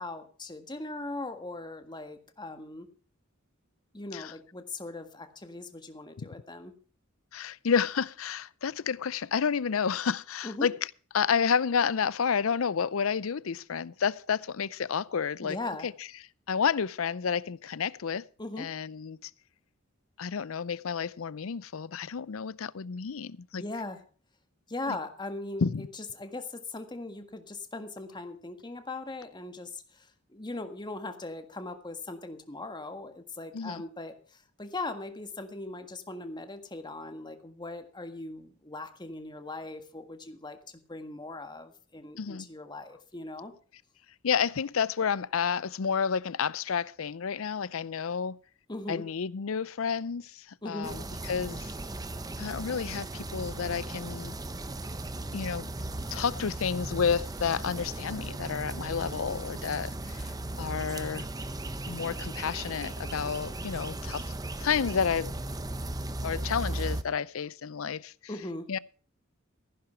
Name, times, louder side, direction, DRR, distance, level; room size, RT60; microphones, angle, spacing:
voice 1, 0.0-2.9 3.9-6.7 10.4-10.7 15.4-15.9 18.4-18.7 23.5-24.0 24.7-34.1 34.6-40.6 40.9-43.5 48.7-49.1 50.6-50.9 68.3-68.7, left 2 dB, 20° left, 1.6 m, -39 dB
voice 2, 7.3-10.7 11.1-15.6 15.8-15.9 16.5-18.2 18.6-19.3 20.2-23.6 25.6-25.9 33.5-33.8 42.2-42.5 44.2-48.4 48.9-51.0 51.3-51.7 52.4-54.3 55.3-55.7 56.1-60.3 60.6-61.3 61.9-64.2 64.6-65.3 66.2-68.1 68.7-68.8, left 6 dB, 80° left, 0.6 m, -30 dB
sound 1, 50.8-67.0, right 1 dB, 20° right, 0.8 m, -37 dB
15.0 x 11.0 x 4.4 m
head